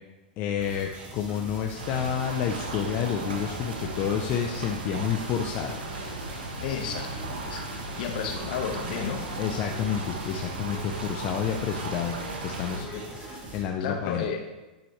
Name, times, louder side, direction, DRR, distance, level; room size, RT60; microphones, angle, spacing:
voice 1, 0.4-5.8 9.4-12.1 12.4-12.9 13.5-14.3, left 8 dB, 40° left, 3 dB, 0.7 m, -29 dB
sound 1, 0.6-13.6, right 2 dB, 25° right, 2.7 m, -44 dB
sound 2, 1.3-13.4, left 2 dB, 20° left, 2.3 m, -49 dB
sound 3, 1.8-12.8, right 2 dB, 90° right, 1.8 m, -36 dB
voice 2, 6.6-7.7 8.0-9.4 12.6-13.0 13.8-14.4, left 7 dB, 65° left, 3 dB, 1.5 m, -33 dB
10.0 x 9.2 x 3.3 m, 1.1 s
hypercardioid pair, 125°, 5 cm